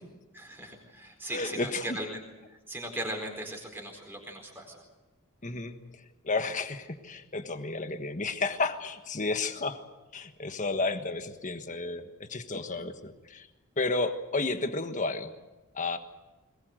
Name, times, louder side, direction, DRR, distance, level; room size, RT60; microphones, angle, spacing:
voice 1, 0.3-4.8, right 1 dB, 10° right, 1 dB, 4.4 m, -39 dB
voice 2, 1.3-2.0 5.4-9.8 10.1-13.5 13.8-15.3 15.7-16.0, left 3 dB, 35° left, 7 dB, 1.4 m, -32 dB
22.0 x 20.5 x 7.9 m, 1.1 s
head